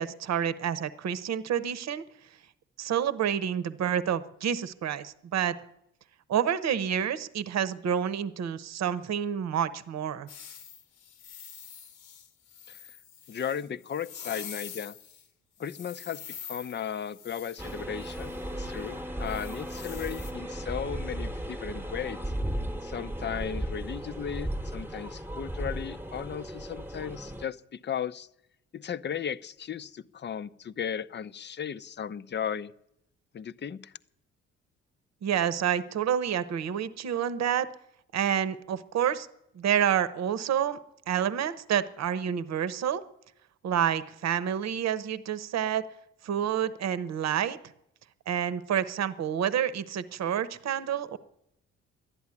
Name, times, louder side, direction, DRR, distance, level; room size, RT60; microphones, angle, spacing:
voice 1, 0.0-2.0 2.8-5.5 6.3-10.3 35.2-37.7 38.1-39.3 39.5-40.8 41.1-43.0 43.6-45.8 46.2-47.6 48.3-51.2, right 9 dB, 60° right, 14 dB, 0.9 m, -28 dB
sound 1, 10.3-15.3 15.6-18.5 19.3-20.3, left 8 dB, 85° left, 1.3 m, -46 dB
voice 2, 13.3-14.9 15.6-22.2 22.8-28.3 28.7-32.7 33.3-33.9, left 8 dB, 35° left, 13 dB, 0.6 m, -36 dB
sound 2, 17.6-27.4, right 1 dB, 5° right, 1.1 m, -36 dB
12.0 x 11.0 x 9.7 m, 0.81 s
cardioid pair, 90°, 30 cm